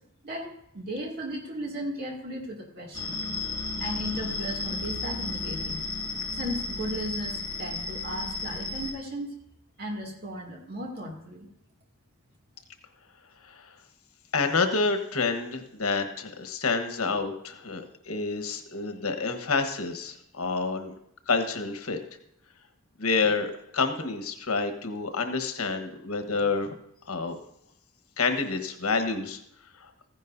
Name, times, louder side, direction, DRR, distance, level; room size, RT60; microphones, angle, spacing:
voice 1, 0.2-3.2 3.8-5.8 6.3-9.3 9.8-11.5, equal, 45° right, 0 dB, 2.3 m, -35 dB
sound 1, 2.9-8.9, left 3 dB, 20° left, 1.5 m, -33 dB
voice 2, 13.4-13.7 14.3-20.9 21.3-22.0 23.0-26.7 27.1-27.4 28.2-29.4 29.8-29.9, left 4 dB, 85° left, 6 dB, 1.3 m, -28 dB
15.5 x 10.5 x 2.7 m, 0.74 s
head